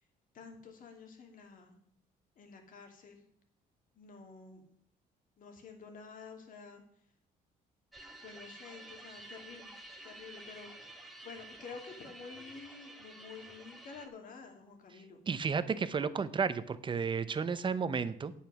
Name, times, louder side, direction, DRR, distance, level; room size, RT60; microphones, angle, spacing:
voice 1, 0.3-1.7 2.4-3.2 4.0-4.6 5.4-6.8 8.2-9.7 10.0-15.2, left 5 dB, 55° left, 4 dB, 2.4 m, -50 dB
sound 1, 7.9-14.1, right 2 dB, ahead, 1.6 m, -51 dB
voice 2, 15.3-18.3, right 5 dB, 30° right, 14 dB, 0.8 m, -32 dB
9.0 x 8.3 x 6.1 m, 0.65 s
cardioid pair, 110°, 17 cm